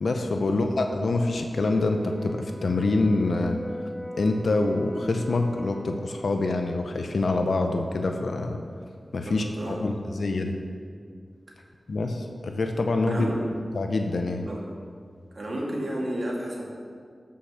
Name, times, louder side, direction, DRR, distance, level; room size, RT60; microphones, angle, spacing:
voice 1, 0.0-3.6 4.1-8.6 9.1-10.6 11.9-13.3 13.7-14.5, left 2 dB, 75° left, 4 dB, 0.7 m, -26 dB
Brass instrument, 1.7-6.0, equal, 35° right, 1.5 m, -41 dB
voice 2, 9.2-9.8 13.1-13.4 14.5-14.6 15.3-16.6, right 1 dB, 50° right, -3 dB, 2.4 m, -32 dB
13.0 x 5.7 x 5.8 m, 2.2 s
wide cardioid pair, 95°, 0 cm